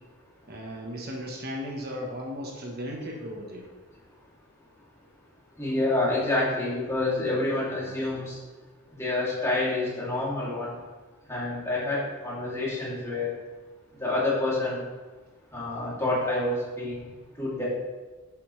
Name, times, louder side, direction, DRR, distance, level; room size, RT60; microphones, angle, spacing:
voice 1, 0.5-3.7, equal, 45° right, 0 dB, 1.1 m, -36 dB
voice 2, 5.6-8.4 9.0-10.7 11.3-13.3 14.0-14.8 15.5-17.1 17.4-17.6, left 2 dB, 15° left, -7 dB, 2.7 m, -28 dB
11.0 x 7.0 x 3.2 m, 1.3 s
head